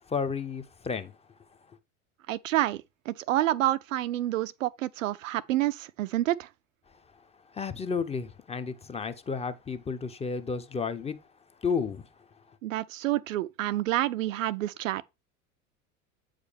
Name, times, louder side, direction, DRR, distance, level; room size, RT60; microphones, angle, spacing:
voice 1, 0.1-1.1 1.7-1.8 6.9-11.2 11.6-12.6, left 5 dB, 15° left, 0.6 m, -33 dB
voice 2, 2.3-6.5 12.6-15.0, right 14 dB, 65° right, 0.5 m, -28 dB
8.1 x 4.9 x 3.4 m
figure-of-eight pair, 75°, 43 cm